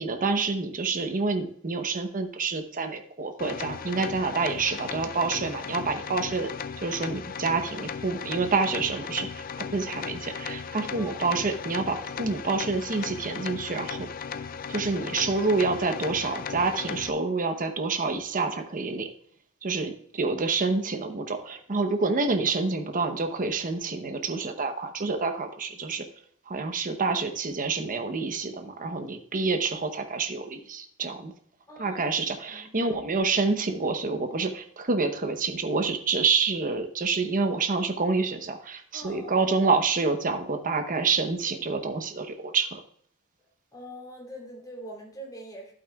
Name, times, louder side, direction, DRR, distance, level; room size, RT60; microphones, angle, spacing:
voice 1, 0.0-6.5 6.8-14.1 14.4-19.1 19.6-26.0 26.5-31.3 31.8-42.8, right 4 dB, 40° right, 6 dB, 0.9 m, -28 dB
sound 1, 3.4-17.1, left 6 dB, 40° left, 0.4 m, -36 dB
voice 2, 31.7-32.2 32.5-33.1 38.9-39.4 43.7-45.7, right 1 dB, 15° left, -2 dB, 3.2 m, -43 dB
12.0 x 8.7 x 2.4 m, 0.63 s
head